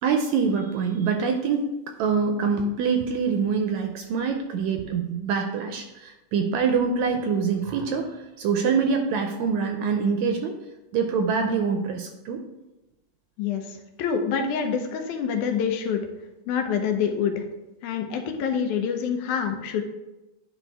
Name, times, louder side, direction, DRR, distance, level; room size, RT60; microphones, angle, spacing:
voice 1, 0.0-1.7 2.0-10.5 10.9-12.4, right 5 dB, 80° right, 4 dB, 1.8 m, -25 dB
voice 2, 13.4-16.0 16.5-17.4 17.8-19.8, left 7 dB, 80° left, 5 dB, 2.1 m, -26 dB
10.0 x 4.3 x 3.4 m, 1.0 s
omnidirectional pair, 3.6 m